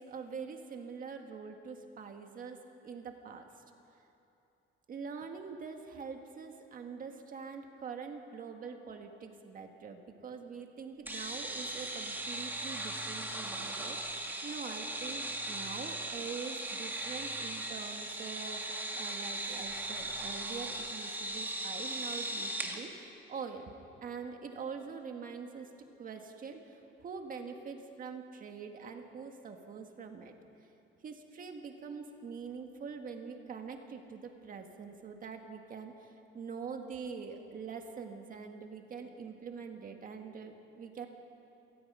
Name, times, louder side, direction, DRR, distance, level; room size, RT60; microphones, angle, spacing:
voice 1, 0.0-3.6 4.9-18.6 18.9-23.7 24.0-30.3 31.0-41.1, right 5 dB, 40° right, 4 dB, 1.7 m, -44 dB
sound 1, 11.1-22.8, right 1 dB, 10° right, 1.6 m, -38 dB
27.0 x 19.0 x 5.6 m, 2.8 s
cardioid pair, 180°, 21 cm